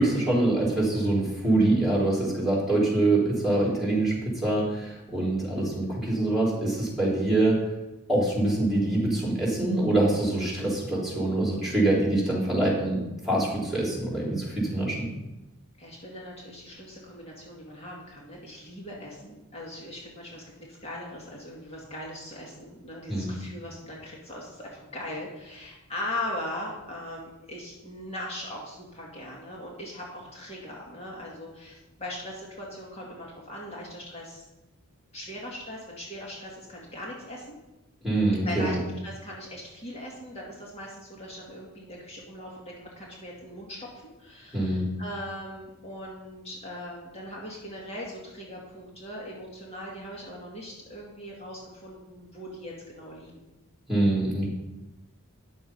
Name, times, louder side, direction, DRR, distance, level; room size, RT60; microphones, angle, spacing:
voice 1, 0.0-7.7 8.1-15.1 23.1-23.3 38.0-38.8 44.5-44.9 53.9-54.5, right 2 dB, ahead, -5 dB, 3.9 m, -25 dB
voice 2, 15.8-20.4 20.7-34.4 35.1-37.6 38.4-38.8 39.0-43.9 44.2-53.4, left 1 dB, 30° left, -4 dB, 2.2 m, -40 dB
9.9 x 6.9 x 5.5 m, 1.0 s
head